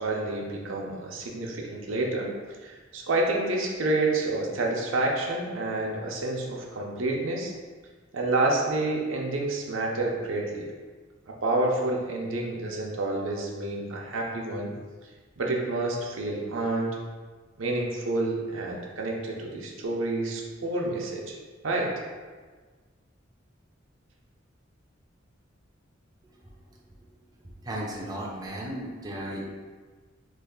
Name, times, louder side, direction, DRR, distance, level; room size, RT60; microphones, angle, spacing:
voice 1, 0.0-2.3 2.6-7.5 8.1-10.7 11.3-14.7 15.4-16.9 17.6-21.4 21.6-22.0, right 2 dB, 80° right, -1 dB, 0.6 m, -29 dB
voice 2, 27.6-29.4, right 1 dB, 20° right, -3 dB, 0.4 m, -34 dB
3.2 x 2.4 x 3.7 m, 1.4 s
head